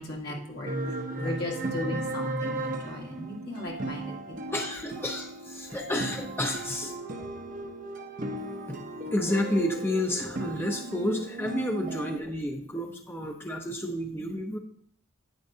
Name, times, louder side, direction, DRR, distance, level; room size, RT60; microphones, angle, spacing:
voice 1, 0.0-0.7 1.2-4.1, left 1 dB, 50° left, -1 dB, 1.7 m, -36 dB
sound 1, 0.7-12.2, right 2 dB, 40° right, 0.8 m, -36 dB
voice 2, 0.8-1.3 4.5-7.0 8.7-8.8 9.1-14.6, left 1 dB, 10° left, 2 dB, 0.7 m, -31 dB
9.8 x 7.7 x 2.8 m, 0.62 s
head